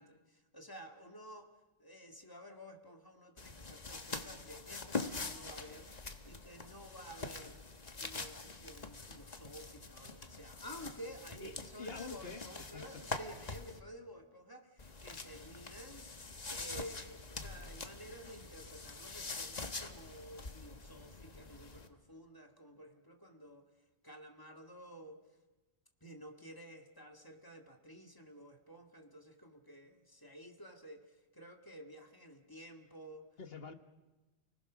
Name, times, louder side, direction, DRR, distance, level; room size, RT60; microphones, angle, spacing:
voice 1, 0.0-1.5 1.8-5.9 6.2-7.6 8.0-16.1 16.5-23.7 24.0-25.2 26.0-33.3, equal, 20° left, 4 dB, 2.1 m, -52 dB
sound 1, 3.4-13.8 14.8-21.9, left 3 dB, 40° left, 1.4 m, -45 dB
voice 2, 11.4-12.4 12.7-13.1 33.4-33.7, left 5 dB, 60° left, 8 dB, 1.6 m, -47 dB
29.5 x 19.5 x 6.3 m, 1.1 s
omnidirectional pair, 1.1 m